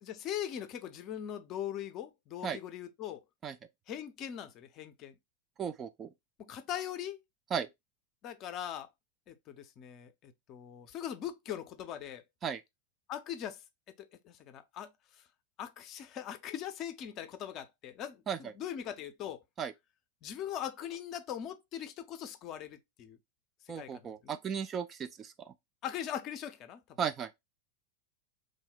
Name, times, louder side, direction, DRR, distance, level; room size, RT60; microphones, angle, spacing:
voice 1, 0.0-3.2 3.9-5.1 6.4-7.2 8.2-8.9 9.3-12.2 13.1-13.6 14.0-14.9 15.6-19.4 20.2-23.2 23.8-24.4 25.8-26.8, left 10 dB, 35° left, 0.5 m, -41 dB
voice 2, 5.6-6.1 7.5-7.7 12.4-12.6 18.3-18.5 19.6-19.7 23.7-25.5 27.0-27.3, right 7 dB, 25° right, 0.4 m, -35 dB
3.1 x 2.1 x 4.1 m
figure-of-eight pair, 90°, 0 cm